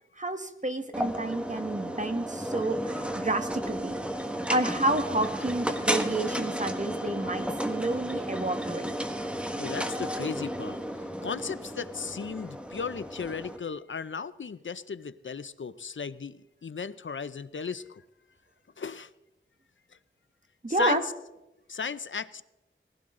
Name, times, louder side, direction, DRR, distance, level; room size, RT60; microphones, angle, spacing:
voice 1, 0.2-4.0 4.5-8.9 20.6-21.0, right 2 dB, 35° right, 7 dB, 1.5 m, -30 dB
sound 1, 0.9-13.6, equal, 5° right, 1.6 m, -33 dB
voice 2, 9.6-18.0 18.8-19.1 20.8-21.0 21.7-22.4, left 5 dB, 65° left, 15 dB, 0.6 m, -36 dB
21.0 x 16.0 x 3.8 m, 0.95 s
wide cardioid pair, 60°, 21 cm